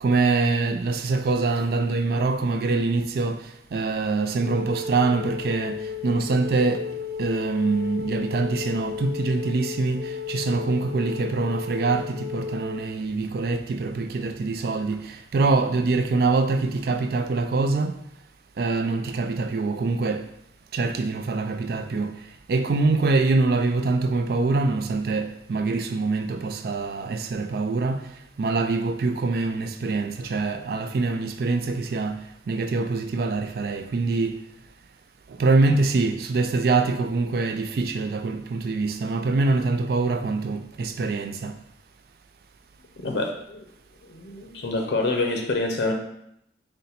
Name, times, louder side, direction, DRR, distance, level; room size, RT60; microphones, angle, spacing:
voice 1, 0.0-6.9 7.2-18.0 18.6-20.3 20.7-22.2 22.5-28.1 28.4-34.4 35.3-41.6, right 3 dB, 60° right, 0.3 m, -24 dB
Wind instrument woodwind instrument, 4.4-12.8, left 6 dB, 35° right, 1.2 m, -34 dB
voice 2, 43.0-43.6 44.1-45.9, left 2 dB, 75° left, 0.5 m, -26 dB
4.1 x 2.1 x 3.9 m
head